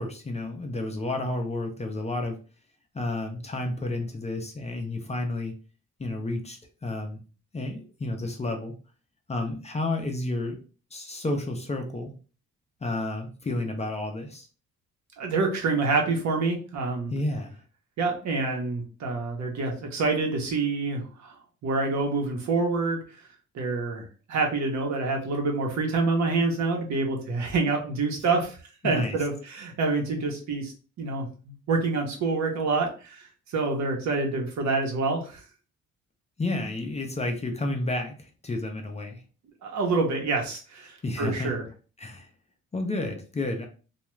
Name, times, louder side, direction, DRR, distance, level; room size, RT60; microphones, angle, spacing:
voice 1, 0.0-2.4 2.9-5.5 6.0-7.2 7.5-8.8 9.3-10.6 10.9-12.2 12.8-14.5 17.1-17.5 28.8-29.2 36.4-39.2 41.0-41.5 42.0-42.3 42.7-43.7, left 2 dB, 20° left, 3 dB, 0.5 m, -31 dB
voice 2, 15.2-17.1 18.0-21.4 21.6-23.0 23.5-28.6 28.8-30.7 31.0-35.4 39.6-41.6, right 3 dB, 65° right, 2 dB, 0.9 m, -27 dB
2.4 x 2.2 x 3.0 m, 0.36 s
cardioid pair, 90°, 30 cm